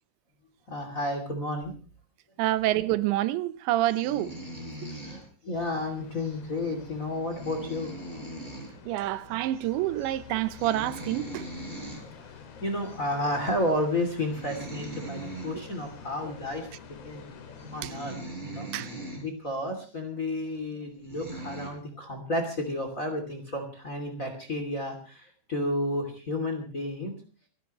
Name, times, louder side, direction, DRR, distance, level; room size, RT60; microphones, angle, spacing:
voice 1, 0.7-1.8 4.9-8.0 11.9-17.3 17.7-18.2 18.4-18.7 19.2-27.1, left 1 dB, 25° left, 2.4 m, -32 dB
voice 2, 2.4-4.3 4.8-4.9 8.9-11.4 18.7-18.9, right 15 dB, 90° right, 3.2 m, -27 dB
sound 1, 3.9-5.7 6.1-6.4 6.8-6.9 7.2-8.7 9.0-9.1 9.4-9.7 10.0-10.2 10.5-12.0 12.8-13.0 13.5-13.7 14.2-15.9 16.5-16.6 17.2-17.3 17.6-19.2 19.8-19.9 20.6-20.7 21.0-21.7, right 1 dB, 10° right, 5.7 m, -41 dB
sound 2, 5.5-17.8, left 6 dB, 60° left, 3.9 m, -48 dB
28.5 x 12.5 x 3.1 m
omnidirectional pair, 5.0 m